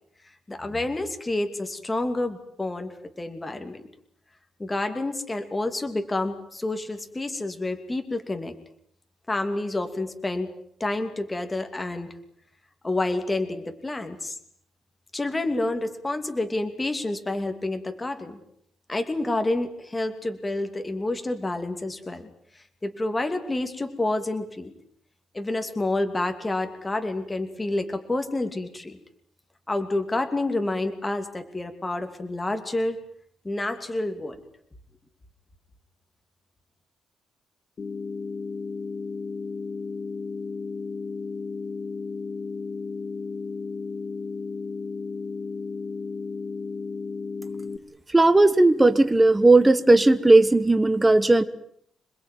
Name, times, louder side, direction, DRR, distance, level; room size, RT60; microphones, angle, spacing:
voice 1, 0.5-3.8 4.6-8.5 9.3-10.5 10.8-12.1 12.8-14.4 15.1-18.4 18.9-22.3 22.8-24.7 25.3-29.0 29.7-33.0 33.4-34.4, left 2 dB, 15° left, 7 dB, 2.8 m, -29 dB
sound 1, 37.8-47.8, left 4 dB, 35° left, 1.8 m, -34 dB
voice 2, 48.1-51.4, right 2 dB, 10° right, 10 dB, 1.2 m, -17 dB
27.5 x 21.0 x 9.4 m, 0.69 s
cardioid pair, 155°, 0 cm